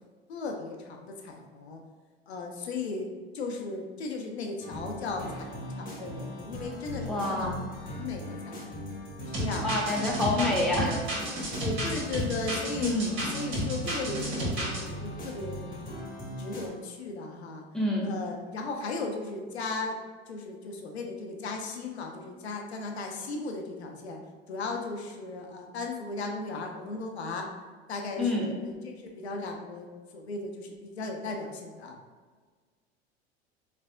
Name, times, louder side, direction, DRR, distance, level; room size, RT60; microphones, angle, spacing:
voice 1, 0.3-1.8 2.3-7.5 8.0-8.9 9.3-10.0 10.4-10.6 11.6-12.9 13.2-17.6 18.0-24.2 24.5-27.5 27.9-32.0, left 3 dB, 80° left, 2 dB, 0.6 m, -36 dB
sound 1, 4.6-16.7, equal, 25° left, 1.1 m, -39 dB
voice 2, 7.1-7.6 9.6-10.9 12.8-13.1 17.7-18.1 28.2-28.5, left 1 dB, ahead, -3 dB, 0.8 m, -27 dB
sound 2, 9.3-14.8, equal, 45° right, 1.5 m, -32 dB
4.0 x 3.3 x 2.2 m, 1.5 s
hypercardioid pair, 80°, 32 cm